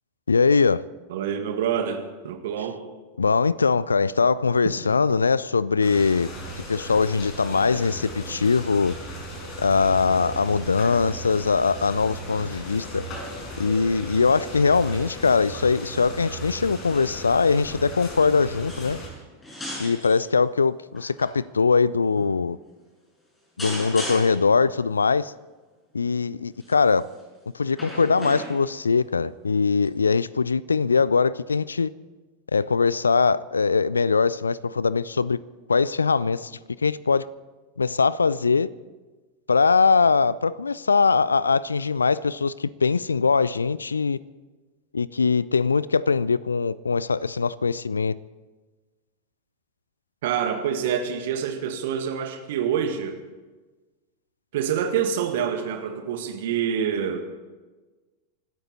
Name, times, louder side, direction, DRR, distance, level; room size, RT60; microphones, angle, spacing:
voice 1, 0.3-0.8 3.2-6.3 6.7-8.9 9.6-13.0 13.6-19.0 19.8-22.6 23.6-25.3 25.9-27.1 27.5-31.9 32.5-35.4 35.7-36.5 36.8-37.3 37.8-38.7 39.5-44.2 44.9-48.2, left 5 dB, 75° left, 0.4 m, -21 dB
voice 2, 1.1-2.8 50.2-53.2 54.5-57.3, right 8 dB, 55° right, 1.8 m, -26 dB
sound 1, 5.8-19.1, equal, 35° left, 5.4 m, -37 dB
sound 2, 18.7-19.2 19.4-20.2 20.9-21.3 22.2-22.4 23.6-24.5 26.6-26.9 27.7-28.8 29.9-30.0, left 1 dB, 15° left, 6.3 m, -36 dB
25.0 x 13.0 x 4.2 m
figure-of-eight pair, 90°, 0 cm